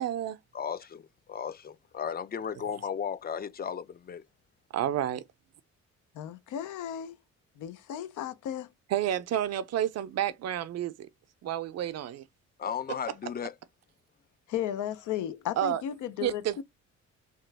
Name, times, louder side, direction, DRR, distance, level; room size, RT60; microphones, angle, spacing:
voice 1, 0.0-0.4 4.7-5.2 8.9-11.1 11.4-12.3 15.6-15.8 16.2-16.6, right 11 dB, 60° right, 0.5 m, -30 dB
voice 2, 0.5-4.2 12.6-13.5, left 7 dB, 30° left, 0.4 m, -35 dB
voice 3, 6.2-7.2 7.6-8.7 14.5-16.6, left 10 dB, 80° left, 0.6 m, -34 dB
2.9 x 2.3 x 3.3 m
cardioid pair, 90°, 30 cm